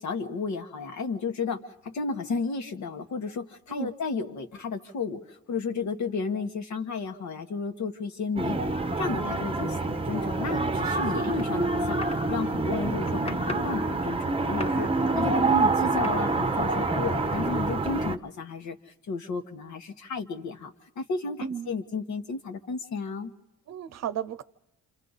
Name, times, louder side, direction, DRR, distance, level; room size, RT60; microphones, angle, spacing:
voice 1, 0.0-23.3, left 4 dB, 65° left, 6 dB, 1.6 m, -33 dB
sound 1, 8.4-18.2, right 3 dB, 20° right, 0.9 m, -27 dB
sound 2, 11.4-12.2 12.7-13.9 14.2-15.1 16.0-16.1, left 2 dB, 20° left, 1.4 m, -40 dB
voice 2, 15.2-15.6 21.4-21.7 23.7-24.4, right 7 dB, 60° right, 14 dB, 0.8 m, -34 dB
27.5 x 27.0 x 4.1 m, 0.94 s
cardioid pair, 90°, 30 cm